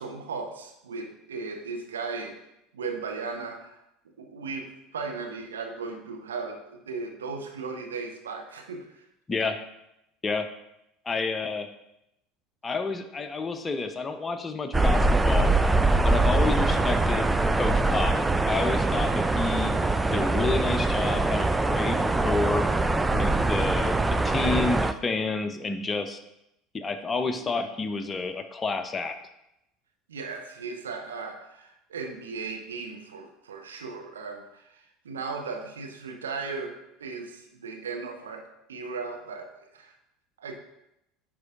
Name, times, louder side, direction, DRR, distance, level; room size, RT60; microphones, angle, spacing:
voice 1, 0.0-2.4 2.7-3.7 4.2-8.9 30.1-39.9 40.4-40.5, right 4 dB, 75° right, 3 dB, 0.8 m, -36 dB
voice 2, 9.3-9.6 10.2-10.5 11.1-11.7 12.6-15.5 16.0-17.3 17.6-18.2 18.4-19.8 20.1-22.7 23.1-23.9 24.2-26.2 26.7-29.2, left 3 dB, 20° left, 8 dB, 0.7 m, -29 dB
sound 1, 14.7-24.9, right 2 dB, 10° right, 0.3 m, -23 dB
9.3 x 4.7 x 2.5 m, 0.85 s
figure-of-eight pair, 70°, 0 cm